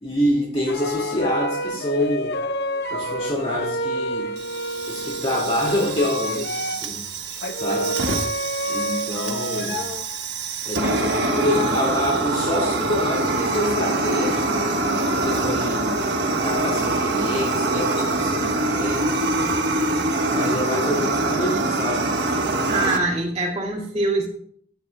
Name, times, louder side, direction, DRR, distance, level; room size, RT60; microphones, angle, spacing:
voice 1, 0.0-2.4 2.9-4.4 4.9-8.0 8.7-9.8 10.6-14.7 15.1-16.0 16.4-19.3 20.3-22.1, left 1 dB, 30° left, -4 dB, 2.2 m, -26 dB
sound 1, 0.7-6.9 7.4-10.2 10.8-11.7, equal, 55° left, 0.7 m, -29 dB
Fire, 4.4-23.0, right 2 dB, 60° right, 1.3 m, -24 dB
voice 2, 22.7-24.3, right 2 dB, 35° right, -3 dB, 2.1 m, -24 dB
16.0 x 10.5 x 2.3 m, 0.64 s
head